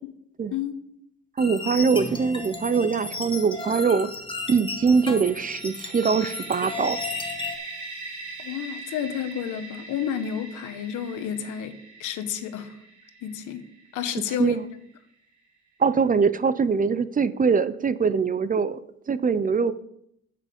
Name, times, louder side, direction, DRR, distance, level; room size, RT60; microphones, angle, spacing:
sound 1, 1.4-7.6, left 3 dB, 15° left, 1.6 m, -34 dB
voice 1, 1.4-4.1 4.5-7.0 14.4-14.6 15.8-18.8 19.1-19.7, right 5 dB, 30° right, 16 dB, 0.5 m, -22 dB
sound 2, 5.2-14.9, right 3 dB, 70° right, 2.2 m, -41 dB
voice 2, 8.4-12.7 13.2-13.6 13.9-14.6, left 9 dB, 85° left, 10 dB, 1.1 m, -31 dB
8.5 x 7.6 x 5.1 m, 0.74 s
cardioid pair, 90°, 30 cm